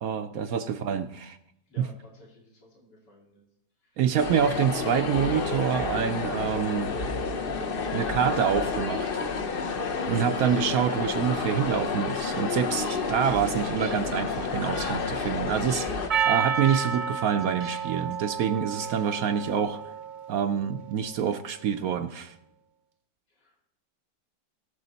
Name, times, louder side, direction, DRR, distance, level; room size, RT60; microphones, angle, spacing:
voice 1, 0.0-1.4 1.8-1.9 4.0-6.9 7.9-9.1 9.8-19.8 20.3-22.3, right 8 dB, 70° right, 9 dB, 0.9 m, -27 dB
voice 2, 1.7-3.4 3.8-4.1 23.3-23.5, equal, 75° left, -2 dB, 3.1 m, -53 dB
sound 1, 4.2-16.1, left 4 dB, 45° left, 0.8 m, -30 dB
sound 2, 11.7-18.3, right 4 dB, 85° right, 1.7 m, -47 dB
Percussion, 16.1-20.7, right 7 dB, 40° right, 0.7 m, -30 dB
20.0 x 7.0 x 4.1 m, 0.76 s
omnidirectional pair, 1.9 m